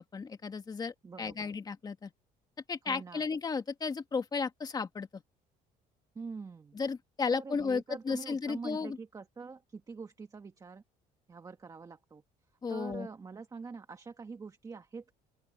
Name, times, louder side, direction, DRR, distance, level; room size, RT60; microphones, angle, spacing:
voice 1, 0.0-2.1 2.7-5.2 6.7-9.0 12.6-13.1, left 5 dB, 25° left, 2.0 m, -34 dB
voice 2, 1.0-1.5 2.8-3.2 6.2-6.8 7.3-10.8 11.3-12.2 12.7-15.2, right 4 dB, 25° right, 1.7 m, -45 dB
open air
cardioid pair, 130°, 15 cm